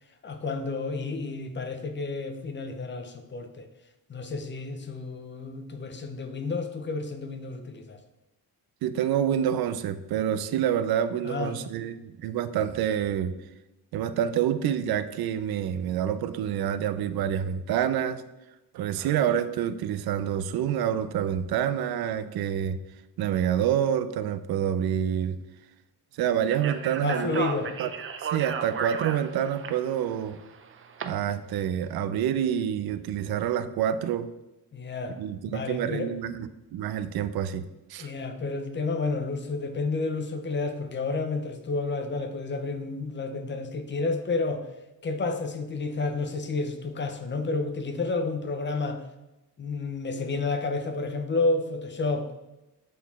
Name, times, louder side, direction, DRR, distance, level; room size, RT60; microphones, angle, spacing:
voice 1, 0.2-3.7 4.1-8.0 11.2-11.6 27.0-27.7 34.7-35.2 35.5-36.1 38.0-44.6 45.0-49.0 49.6-52.4, left 3 dB, 30° left, 7 dB, 0.6 m, -30 dB
voice 2, 8.8-13.3 13.9-18.2 18.7-22.8 23.2-25.4 26.2-27.4 27.8-27.9 28.3-30.4 31.0-34.3 35.2-37.6 37.9-38.1, right 9 dB, 80° right, 13 dB, 0.5 m, -27 dB
Speech, 26.5-31.0, right 6 dB, 35° right, 0.5 m, -34 dB
8.4 x 4.0 x 4.2 m, 0.98 s
cardioid pair, 165°, 37 cm